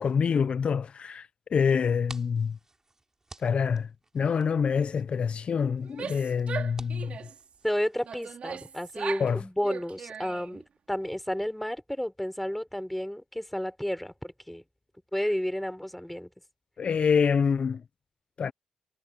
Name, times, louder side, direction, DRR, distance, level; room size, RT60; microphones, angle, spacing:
voice 1, 0.0-2.6 3.4-3.9 4.1-7.2 9.2-9.4 16.8-17.8 18.4-18.5, left 6 dB, 55° left, 0.5 m, -26 dB
sound 1, 1.8-8.1, right 2 dB, 20° right, 6.8 m, -53 dB
Female speech woman speaking / Yell, 5.8-7.4 8.0-9.3 9.6-10.6, right 7 dB, 65° right, 4.5 m, -39 dB
voice 2, 7.6-10.6 10.9-14.6 15.1-16.3, equal, 5° left, 4.9 m, -31 dB
cardioid pair, 80°, 2 cm